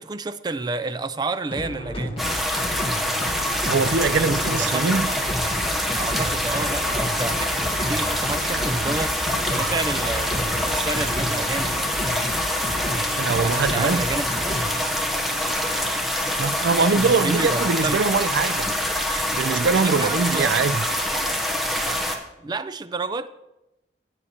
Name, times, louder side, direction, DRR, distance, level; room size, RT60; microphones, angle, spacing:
voice 1, 0.0-2.2 3.8-5.0 5.9-9.2 9.5-11.9 12.8-14.6 16.9-18.0 19.7-20.6 21.8-22.0 22.4-23.3, right 3 dB, 25° right, 0.3 m, -30 dB
sound 1, 1.5-14.8, equal, 30° left, 1.1 m, -31 dB
sound 2, 2.2-22.2, left 1 dB, ahead, 0.8 m, -25 dB
voice 2, 3.7-5.1 13.2-14.0 16.4-18.7 19.1-20.8, right 4 dB, 90° right, 0.5 m, -22 dB
sound 3, 5.3-12.2, left 1 dB, 60° left, 2.9 m, -39 dB
15.5 x 8.5 x 2.9 m
head